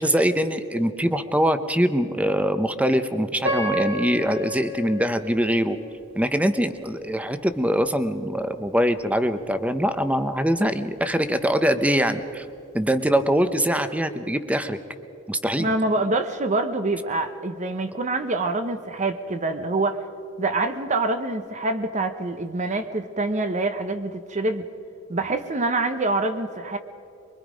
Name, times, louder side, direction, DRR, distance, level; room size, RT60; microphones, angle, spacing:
voice 1, 0.0-5.8 6.1-12.4 12.7-14.8 15.3-15.7, equal, 5° right, 10 dB, 0.8 m, -23 dB
Piano, 3.4-6.4 7.0-7.1 7.8-8.0, equal, 75° right, 5.3 m, -30 dB
voice 2, 15.6-20.0 20.4-24.7 25.1-26.8, right 2 dB, 35° right, 8 dB, 0.9 m, -25 dB
24.0 x 23.0 x 5.1 m, 2.7 s
head